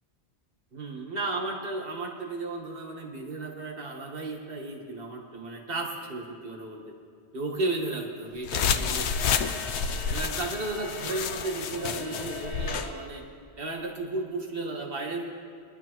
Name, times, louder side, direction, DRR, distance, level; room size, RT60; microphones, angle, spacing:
voice 1, 0.7-6.9 7.3-9.2 10.1-13.2 13.6-15.3, right 2 dB, 60° right, 1 dB, 1.8 m, -34 dB
sound 1, 8.4-12.9, left 7 dB, 90° left, 0.9 m, -29 dB
Bowed string instrument, 8.9-13.6, right 4 dB, 80° right, 1.4 m, -45 dB
21.5 x 11.5 x 3.0 m, 2.2 s
omnidirectional pair, 1.1 m